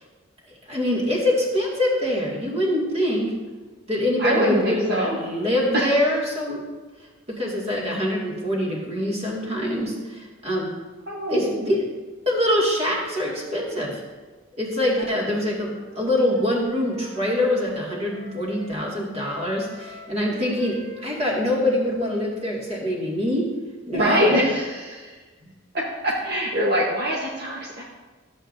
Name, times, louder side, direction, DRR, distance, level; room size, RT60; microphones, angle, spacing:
voice 1, 0.5-3.3 3.9-6.6 7.3-10.7 11.3-11.8 12.3-14.0 14.6-23.5 23.9-24.4 25.4-25.5, left 1 dB, 30° right, -4 dB, 2.1 m, -24 dB
voice 2, 4.2-5.2 5.7-5.9 11.1-11.7 15.0-15.1 23.9-25.2 25.7-27.8, equal, 50° right, -4 dB, 1.2 m, -24 dB
Wind instrument woodwind instrument, 15.3-18.8 19.1-22.9, right 2 dB, 75° right, 1.5 m, -44 dB
13.5 x 7.9 x 2.6 m, 1.3 s
head